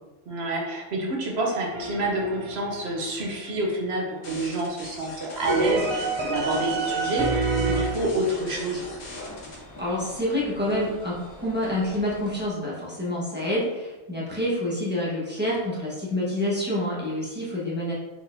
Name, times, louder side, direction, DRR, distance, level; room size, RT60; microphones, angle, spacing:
voice 1, 0.3-8.8, right 1 dB, 60° right, -1 dB, 1.1 m, -28 dB
sound 1, 1.7-3.4 5.5-7.9, right 3 dB, 45° right, 0.3 m, -27 dB
sound 2, 4.2-9.5, left 2 dB, 85° left, 1.5 m, -43 dB
sound 3, 5.4-12.5, left 2 dB, 30° left, 0.3 m, -41 dB
voice 2, 9.8-17.9, left 1 dB, 10° right, -7 dB, 1.2 m, -27 dB
4.5 x 4.1 x 2.7 m, 1.1 s
omnidirectional pair, 1.2 m